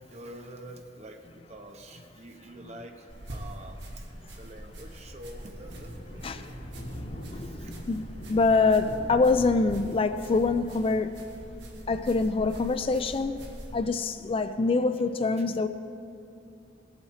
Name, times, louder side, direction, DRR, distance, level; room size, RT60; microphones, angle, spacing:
voice 1, 0.0-6.6 7.2-7.7, right 1 dB, 40° right, 3 dB, 1.0 m, -47 dB
sound 1, 3.1-13.8, right 1 dB, 70° right, 1.4 m, -44 dB
Thunder, 4.4-13.5, equal, 80° left, 2.5 m, -44 dB
voice 2, 6.2-6.5 7.3-8.0 8.3-11.2 11.9-13.4 13.7-15.7, left 3 dB, 30° left, 10 dB, 0.3 m, -25 dB
20.0 x 7.7 x 4.2 m, 2.5 s
head